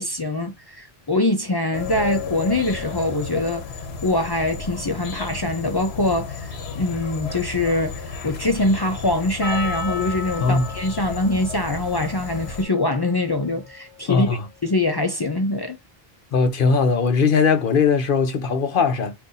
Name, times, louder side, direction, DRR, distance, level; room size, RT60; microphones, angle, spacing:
voice 1, 0.0-3.7 4.0-14.3 14.6-15.8, left 2 dB, 40° left, 0.3 m, -23 dB
sound 1, 1.7-12.6, left 4 dB, 85° left, 1.0 m, -33 dB
Percussion, 9.4-14.0, left 3 dB, 25° right, 1.6 m, -35 dB
voice 2, 10.4-10.7 14.1-14.4 16.3-19.1, left 5 dB, 60° left, 0.8 m, -19 dB
2.6 x 2.5 x 3.8 m
omnidirectional pair, 1.0 m